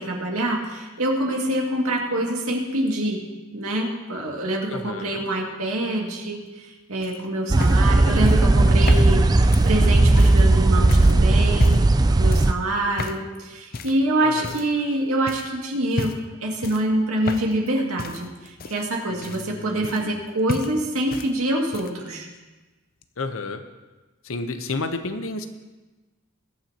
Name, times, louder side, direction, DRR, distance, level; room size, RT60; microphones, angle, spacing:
voice 1, 0.0-3.2 3.5-11.8 12.1-16.1 16.4-22.3, right 1 dB, 85° right, -1 dB, 2.3 m, -25 dB
voice 2, 4.7-5.2 14.2-14.6 19.1-20.2 23.2-23.6 24.2-25.5, left 3 dB, 70° left, 8 dB, 0.9 m, -32 dB
sound 1, 7.0-10.5 10.9-11.2 11.5-12.0 12.3-12.6 13.0-13.3 13.7-14.0 14.4-14.9 15.3-15.5 15.9-16.3 16.6-17.7 18.0-20.2 20.5-21.3 21.6-22.1 23.0-23.1, left 3 dB, 40° left, 0.5 m, -33 dB
sound 2, 7.5-12.5, right 2 dB, 20° right, 0.3 m, -16 dB
21.5 x 9.2 x 2.9 m, 1.2 s
head